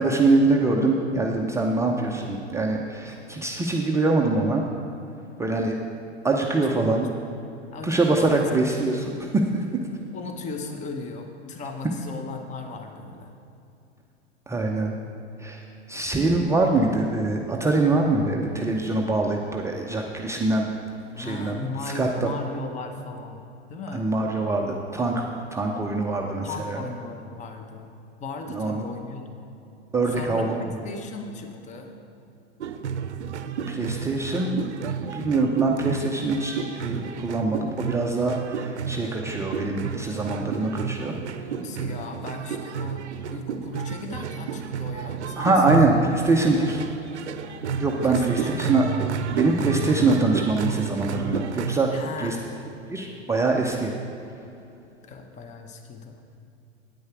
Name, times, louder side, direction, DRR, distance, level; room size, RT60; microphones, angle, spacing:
voice 1, 0.0-4.6 5.4-5.8 6.2-7.1 7.8-9.7 14.5-14.9 15.4-15.6 15.9-20.7 21.2-21.6 21.9-22.3 23.9-26.8 28.5-28.8 29.9-30.7 33.7-34.6 35.0-41.2 41.8-41.9 45.4-46.8 47.8-48.9 49.3-51.9 52.2-52.4 52.9-53.9, right 3 dB, 10° right, 0 dB, 0.5 m, -24 dB
voice 2, 6.6-7.0 7.7-8.5 10.1-13.3 21.1-23.4 23.7-24.1 26.4-27.9 28.2-29.4 30.1-32.0 41.6-43.0 43.3-45.5 46.0-47.0 48.0-48.7 51.9-52.4 55.0-56.2, left 3 dB, 20° left, 5 dB, 0.9 m, -37 dB
sound 1, 32.6-51.8, right 7 dB, 75° right, 0.6 m, -31 dB
9.5 x 9.2 x 4.7 m, 2.7 s
figure-of-eight pair, 95°, 35 cm